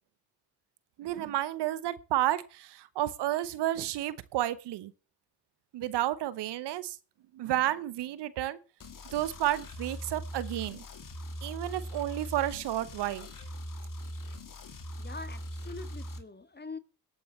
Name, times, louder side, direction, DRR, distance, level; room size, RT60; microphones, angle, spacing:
voice 1, 1.0-4.9 5.7-6.9 7.4-8.6 9.1-10.8 11.4-13.3, right 14 dB, 75° right, 0.9 m, -31 dB
sound 1, 8.8-16.2, equal, 50° left, 2.6 m, -41 dB
voice 2, 15.0-16.8, left 4 dB, 25° left, 1.7 m, -43 dB
21.5 x 8.5 x 3.1 m
hypercardioid pair, 45°, 42 cm